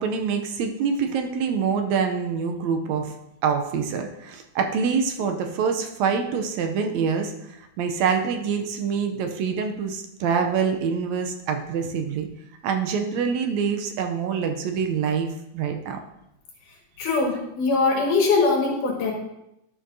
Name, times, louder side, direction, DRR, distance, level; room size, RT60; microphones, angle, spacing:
voice 1, 0.0-3.1 3.4-12.3 12.6-16.0, right 6 dB, 75° right, 5 dB, 1.8 m, -25 dB
voice 2, 17.0-19.1, left 4 dB, 90° left, -1 dB, 3.3 m, -22 dB
12.0 x 6.3 x 2.7 m, 0.83 s
omnidirectional pair, 3.5 m